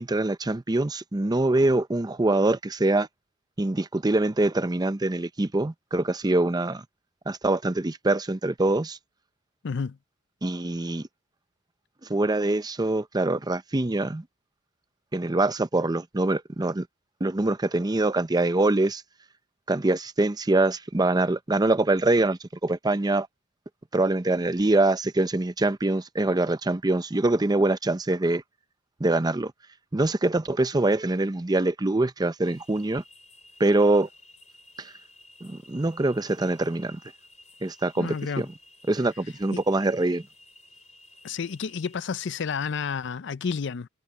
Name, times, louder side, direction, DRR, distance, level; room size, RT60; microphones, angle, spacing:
voice 1, 0.0-3.1 3.6-6.8 7.3-9.0 10.4-11.0 12.1-14.2 15.1-16.9 17.2-19.0 19.7-23.3 23.9-28.4 29.0-29.5 29.9-33.0 33.6-34.1 35.4-37.0 37.6-38.5 38.9-40.2, right 2 dB, 20° right, 0.6 m, -24 dB
voice 2, 9.6-10.0 38.0-38.5 41.2-43.9, left 5 dB, 65° left, 0.5 m, -30 dB
sound 1, 32.4-42.0, left 1 dB, 40° left, 3.6 m, -54 dB
head